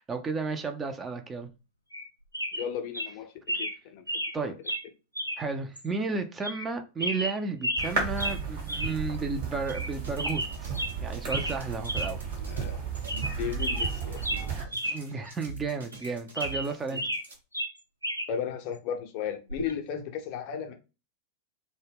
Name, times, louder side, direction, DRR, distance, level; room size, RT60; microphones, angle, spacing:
voice 1, 0.0-1.5 4.3-4.5 5.4-10.7 11.0-12.2 14.9-17.0, right 4 dB, 20° right, 0.4 m, -33 dB
sound 1, 1.9-2.1 2.3-2.7 2.9-3.1 3.5-3.8 4.1-4.4 4.7-4.8 5.2-5.4 5.8-5.9 6.4-6.7 7.0-7.9 8.2-8.4 8.7-8.9 9.2-9.3 9.7-9.9 10.2-11.0 11.3-11.6 11.8-12.1 12.5-12.6 13.0-13.3 13.6-15.0 15.3-15.4 15.9-17.3 17.5-18.3 19.5-19.7, equal, 90° right, 0.3 m, -32 dB
voice 2, 2.5-4.0 12.4-12.8 13.1-14.4 16.9-17.0 18.3-20.7, left 8 dB, 45° left, 0.5 m, -35 dB
sound 2, 7.8-14.6, right 5 dB, 55° right, 1.0 m, -34 dB
sound 3, 9.7-17.4, right 7 dB, 70° right, 0.7 m, -44 dB
2.1 x 2.1 x 3.3 m
figure-of-eight pair, 90°, 0 cm